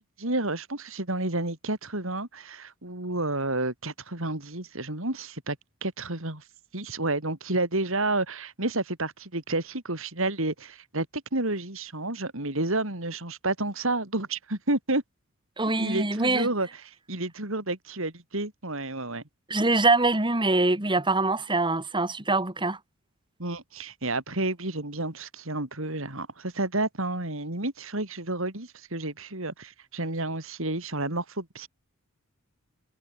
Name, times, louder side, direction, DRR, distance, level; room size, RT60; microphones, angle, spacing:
voice 1, 0.0-5.6 5.8-6.4 6.7-15.0 15.8-16.7 17.1-19.2 23.4-31.7, right 2 dB, 65° right, 4.7 m, -30 dB
voice 2, 15.6-16.5 19.5-22.8, right 2 dB, 20° right, 3.6 m, -24 dB
head